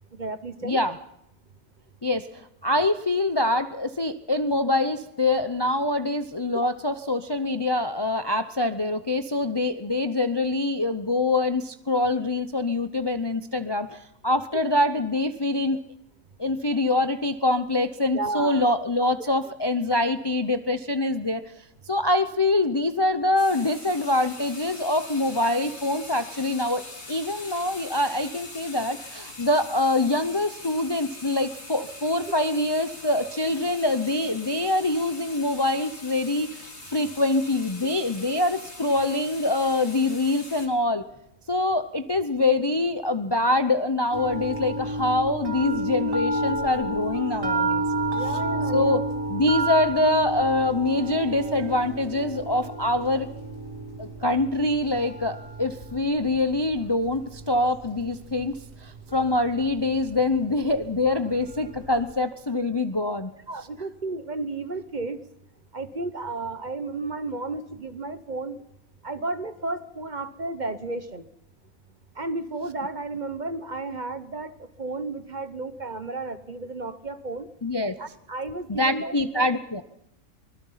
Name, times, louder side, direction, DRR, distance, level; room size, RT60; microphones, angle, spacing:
voice 1, 0.1-0.8 6.6-6.7 18.1-18.6 19.2-19.5 48.1-49.0 63.5-65.2 65.7-68.6 69.0-71.3 72.2-77.5 78.0-79.4, right 3 dB, 35° right, 12 dB, 1.0 m, -33 dB
voice 2, 0.6-1.0 2.0-15.9 16.4-21.4 21.9-26.8 27.1-41.0 41.5-47.8 48.7-49.0 49.3-53.3 54.0-58.5 58.8-63.3 77.6-77.9 78.7-79.8, left 2 dB, 25° left, 10 dB, 0.6 m, -24 dB
sound 1, 23.4-40.7, left 2 dB, 50° left, 3.4 m, -42 dB
sound 2, 44.1-62.1, right 1 dB, 75° right, 3.0 m, -31 dB
24.5 x 20.5 x 5.7 m, 0.81 s
omnidirectional pair, 1.4 m